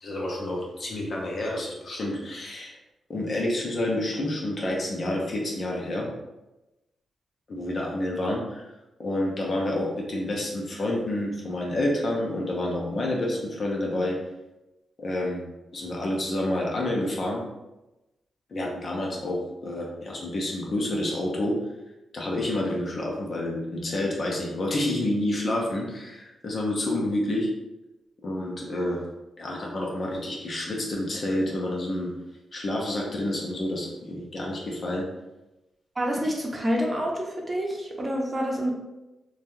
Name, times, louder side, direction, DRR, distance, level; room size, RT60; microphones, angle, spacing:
voice 1, 0.0-2.7 3.1-6.1 7.5-8.7 9.0-14.2 15.0-15.4 15.7-17.4 18.5-21.6 22.1-27.5 28.2-29.0 29.4-32.1 32.5-35.1, left 1 dB, 55° left, -2 dB, 0.8 m, -29 dB
voice 2, 36.0-38.7, equal, 30° right, -1 dB, 0.7 m, -27 dB
3.1 x 2.3 x 2.7 m, 0.99 s
cardioid pair, 60°, 0 cm